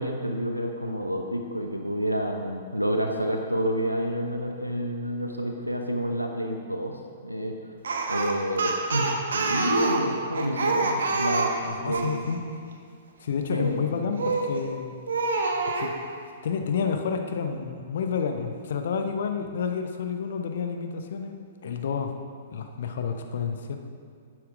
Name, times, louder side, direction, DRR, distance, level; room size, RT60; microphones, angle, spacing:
voice 1, 0.0-7.6 8.1-11.5 11.8-12.2 13.5-14.1, equal, 90° right, 3 dB, 0.9 m, -29 dB
Speech, 7.8-12.2 14.2-14.6 15.1-15.9, right 3 dB, 65° right, 1.3 m, -26 dB
voice 2, 11.7-12.4 13.2-14.9 15.7-16.0 16.4-22.1 22.5-23.8, left 6 dB, 55° left, 6 dB, 0.9 m, -30 dB
11.0 x 9.4 x 5.0 m, 2.2 s
figure-of-eight pair, 110°, 0 cm